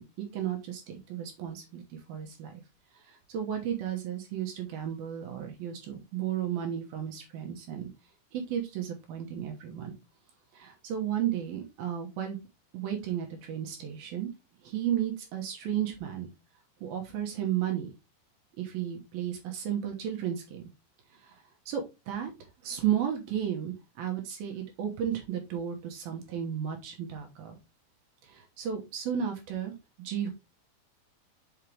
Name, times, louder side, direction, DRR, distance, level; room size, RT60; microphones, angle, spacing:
voice 1, 0.0-2.6 3.0-7.9 8.3-9.9 10.5-12.4 12.7-14.3 14.6-16.3 16.8-17.9 18.6-20.6 21.1-21.4 21.7-22.3 22.6-27.6 28.2-29.7 30.0-30.3, right 9 dB, 70° right, 2 dB, 2.4 m, -33 dB
5.8 x 5.6 x 3.3 m, 0.24 s
omnidirectional pair, 5.3 m